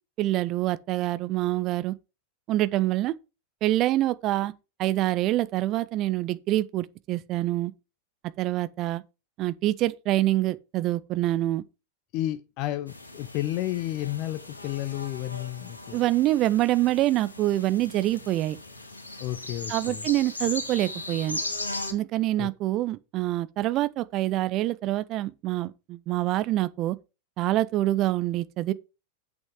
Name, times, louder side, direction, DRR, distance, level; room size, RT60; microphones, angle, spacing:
voice 1, 0.2-1.9 2.5-3.2 3.6-4.5 4.8-7.7 8.4-9.0 9.4-11.6 15.9-18.6 19.7-21.4 21.9-27.0 27.4-28.7, right 15 dB, 35° right, 0.7 m, -26 dB
voice 2, 12.1-16.0 19.2-20.1 22.4-22.5, left 14 dB, 40° left, 0.6 m, -32 dB
sound 1, 12.9-21.9, left 2 dB, 80° left, 2.0 m, -38 dB
8.2 x 6.6 x 4.9 m
figure-of-eight pair, 90°, 0 cm